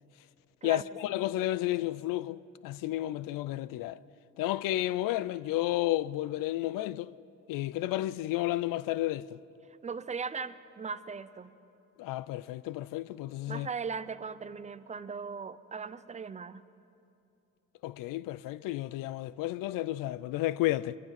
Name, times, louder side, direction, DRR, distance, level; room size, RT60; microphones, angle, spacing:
voice 1, 0.6-4.0 4.4-7.1 7.5-9.4 12.0-13.7 17.8-21.0, left 15 dB, 90° left, 0.5 m, -32 dB
voice 2, 9.8-11.5 13.5-16.6, right 5 dB, 20° right, 0.6 m, -38 dB
24.0 x 22.5 x 5.8 m
cardioid pair, 115°, 32 cm